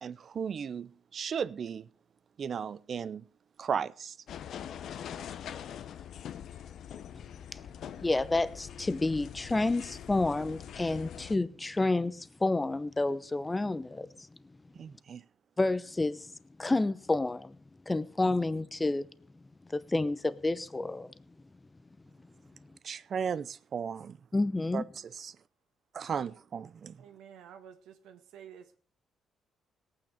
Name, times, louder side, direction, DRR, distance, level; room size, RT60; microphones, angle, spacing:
voice 1, 0.0-1.9 2.4-3.2 3.6-4.2 14.8-15.2 22.8-24.2 24.7-25.4 25.9-27.0, right 7 dB, 50° right, 0.6 m, -35 dB
sound 1, 4.3-11.4, left 9 dB, 70° left, 0.8 m, -43 dB
voice 2, 7.9-14.1 15.6-16.3 16.6-17.6 17.9-19.1 19.7-21.1 24.3-24.8, left 2 dB, 20° left, 0.8 m, -29 dB
voice 3, 27.0-28.8, right 8 dB, 90° right, 1.6 m, -51 dB
18.5 x 9.0 x 5.0 m
cardioid pair, 90°, 0 cm